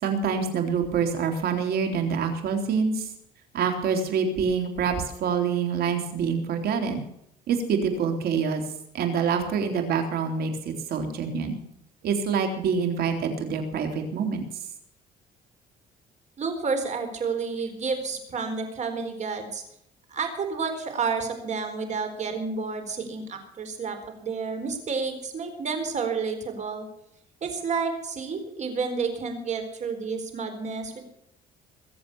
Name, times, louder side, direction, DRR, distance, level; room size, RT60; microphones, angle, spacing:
voice 1, 0.0-3.1 3.5-7.0 7.5-8.6 8.9-11.6 12.0-14.4, right 6 dB, 65° right, 5 dB, 3.8 m, -26 dB
voice 2, 16.4-19.6 20.1-26.9 27.4-31.0, right 5 dB, 45° right, 7 dB, 4.3 m, -30 dB
22.5 x 7.9 x 7.2 m, 0.76 s
cardioid pair, 110°, 17 cm